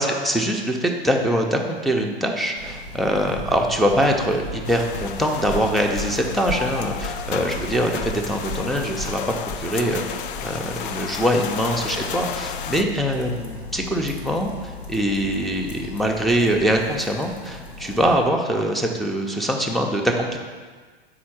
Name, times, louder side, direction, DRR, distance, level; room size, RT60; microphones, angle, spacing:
voice 1, 0.0-9.2 9.6-20.4, equal, ahead, -1 dB, 0.6 m, -23 dB
sound 1, 2.6-18.1, left 2 dB, 85° left, 1.3 m, -36 dB
sound 2, 4.6-12.8, left 8 dB, 60° left, 0.5 m, -33 dB
4.8 x 4.1 x 5.9 m, 1.5 s
hypercardioid pair, 100°, 31 cm